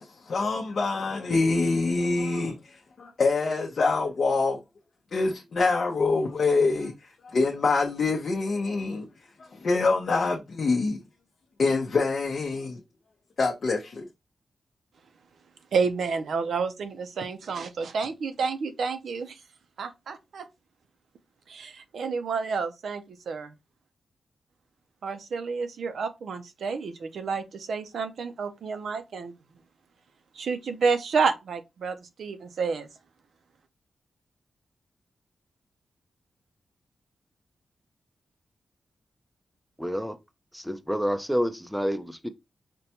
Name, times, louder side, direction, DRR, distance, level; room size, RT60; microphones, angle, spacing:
voice 1, 0.0-4.6 5.1-9.1 9.4-11.0 11.6-12.8 13.4-14.1, left 3 dB, 55° left, 0.6 m, -25 dB
voice 2, 15.7-19.4 19.8-20.5 21.5-23.5 25.0-29.3 30.3-32.9, right 5 dB, 75° right, 0.5 m, -30 dB
voice 3, 39.8-40.2 40.5-42.3, equal, ahead, 0.4 m, -28 dB
5.1 x 2.2 x 2.8 m
wide cardioid pair, 155°, 0 cm